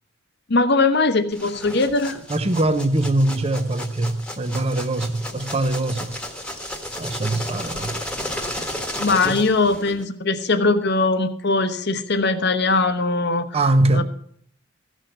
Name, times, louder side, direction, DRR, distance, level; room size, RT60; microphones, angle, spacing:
voice 1, 0.5-2.2 9.0-13.5 13.9-14.0, left 3 dB, 55° left, 1.0 m, -20 dB
sound 1, 1.3-10.0, left 1 dB, 5° left, 1.4 m, -33 dB
voice 2, 2.3-6.1 7.0-8.0 9.2-9.4 13.5-14.0, right 2 dB, 30° right, 0.8 m, -22 dB
15.5 x 6.3 x 7.8 m
head